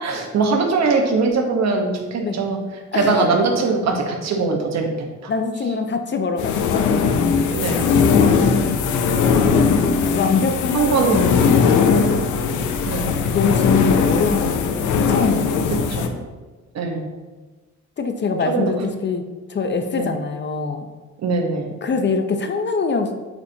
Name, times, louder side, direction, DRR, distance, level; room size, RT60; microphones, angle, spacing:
voice 1, 0.0-2.6 2.9-5.3 7.5-7.9 10.7-11.2 12.9-13.2 15.7-16.1 16.7-17.1 18.4-18.7 20.0-20.1 21.2-21.7, right 4 dB, 60° right, 2 dB, 1.2 m, -21 dB
voice 2, 2.9-3.3 5.3-6.9 8.2-8.7 10.1-11.3 11.7-12.0 13.3-16.2 18.0-20.9 21.8-23.1, left 4 dB, 35° left, 6 dB, 0.6 m, -24 dB
sound 1, 6.4-16.1, left 5 dB, 80° left, 0.7 m, -19 dB
8.8 x 4.2 x 2.8 m, 1.2 s
cardioid pair, 90°, 30 cm